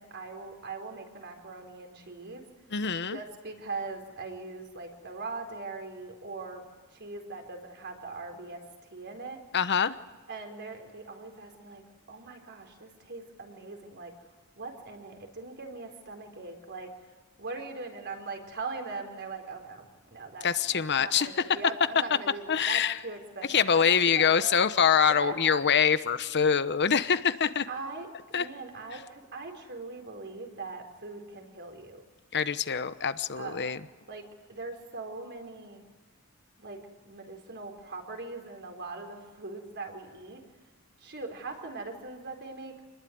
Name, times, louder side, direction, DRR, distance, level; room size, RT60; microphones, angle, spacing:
voice 1, 0.0-2.4 3.1-8.6 8.9-9.4 10.3-11.8 12.1-14.1 14.6-16.9 17.4-24.6 25.0-25.6 27.7-32.1 33.3-33.7 34.1-35.8 36.6-40.4 41.0-42.7, right 3 dB, 55° right, 4 dB, 4.5 m, -41 dB
voice 2, 2.7-3.2 9.5-9.9 20.4-21.3 22.5-23.0 23.5-27.7 28.3-28.5 32.3-33.8, left 7 dB, 55° left, 13 dB, 1.0 m, -25 dB
27.5 x 21.0 x 9.5 m, 1.4 s
head